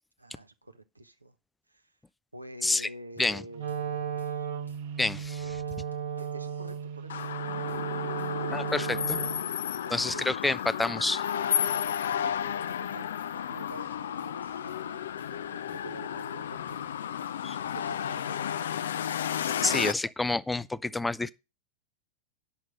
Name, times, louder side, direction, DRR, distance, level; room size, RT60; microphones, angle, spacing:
voice 1, 0.2-1.4 1.7-1.9 2.3-4.5 5.4-5.8 6.2-9.2 9.8-10.2 11.3-15.0 15.3-17.1 17.7-18.9 19.5-19.8, right 2 dB, 85° right, 1.0 m, -48 dB
sound 1, 2.7-2.8 3.2-3.4 3.7-3.8 4.2-4.4 4.7-4.8 5.2-5.4 5.7-6.8 7.2-7.4 7.7-7.8 8.2-8.4 8.7-8.8 9.2-9.4 9.7-10.8 11.2-11.4 11.7-11.8 12.2-12.4 12.7-12.8 13.2-13.4 13.7-14.8 15.2-15.4 15.7-15.8 16.2-16.4 16.7-16.8 17.2-17.4 17.7-18.7, left 2 dB, 85° left, 1.6 m, -56 dB
Wind instrument woodwind instrument, 3.5-9.6, right 7 dB, 55° right, 0.8 m, -35 dB
voice 2, 5.0-5.5 8.5-9.0 9.9-11.2 17.4-17.6 19.6-21.3, left 2 dB, 10° left, 0.5 m, -28 dB
sound 2, 7.1-19.9, left 9 dB, 60° left, 0.4 m, -32 dB
9.1 x 6.1 x 6.3 m
figure-of-eight pair, 90°, 0 cm